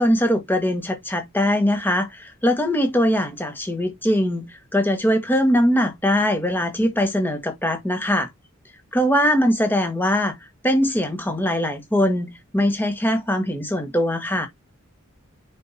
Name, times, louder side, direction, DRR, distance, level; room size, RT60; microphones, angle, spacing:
voice 1, 0.0-8.3 8.9-10.4 10.6-14.5, equal, 10° left, 1.6 m, -21 dB
7.6 x 5.5 x 2.8 m
head